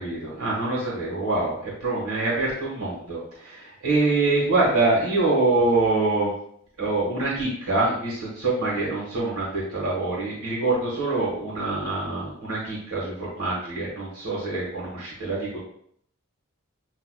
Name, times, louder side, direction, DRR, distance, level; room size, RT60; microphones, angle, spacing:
voice 1, 0.0-6.3 6.8-15.6, right 2 dB, 90° right, -5 dB, 1.4 m, -25 dB
7.6 x 2.8 x 2.2 m, 0.65 s
head